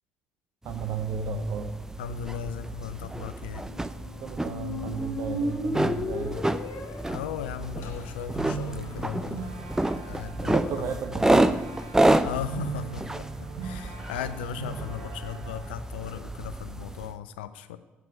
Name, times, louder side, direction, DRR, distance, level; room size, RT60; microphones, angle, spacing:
voice 1, 0.6-1.7 4.2-6.5 10.4-11.8, right 6 dB, 60° right, 0.7 m, -34 dB
sound 1, 0.7-17.1, right 1 dB, 10° right, 0.5 m, -29 dB
voice 2, 2.0-3.6 7.1-9.5 10.0-11.0 12.2-17.8, left 8 dB, 85° left, 0.4 m, -37 dB
Squeak, 3.5-9.5, left 1 dB, 55° left, 1.8 m, -36 dB
sound 2, 7.8-15.8, right 6 dB, 80° right, 1.2 m, -40 dB
9.0 x 5.9 x 7.8 m
hypercardioid pair, 50°, 5 cm